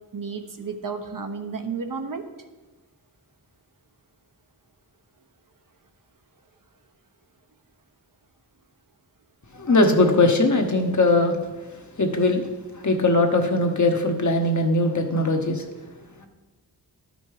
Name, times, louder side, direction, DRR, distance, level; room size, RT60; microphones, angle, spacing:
voice 1, 0.1-2.2, right 5 dB, 50° right, 5 dB, 1.0 m, -32 dB
voice 2, 9.5-11.4 11.7-15.7 16.2-16.3, left 2 dB, 45° left, 4 dB, 1.2 m, -21 dB
12.0 x 5.3 x 4.8 m, 1.2 s
wide cardioid pair, 80°, 41 cm